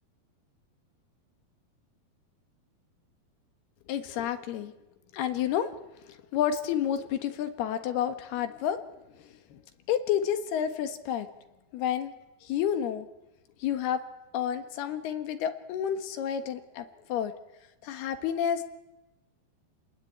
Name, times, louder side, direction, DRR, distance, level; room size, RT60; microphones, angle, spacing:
voice 1, 3.9-4.7 5.1-5.7 6.3-8.8 9.2-9.6 9.9-11.3 11.7-12.1 12.4-13.1 13.6-14.0 14.3-17.3 17.8-18.6, left 9 dB, 85° left, 9 dB, 3.5 m, -30 dB
30.0 x 20.0 x 8.6 m, 1.0 s
omnidirectional pair, 4.4 m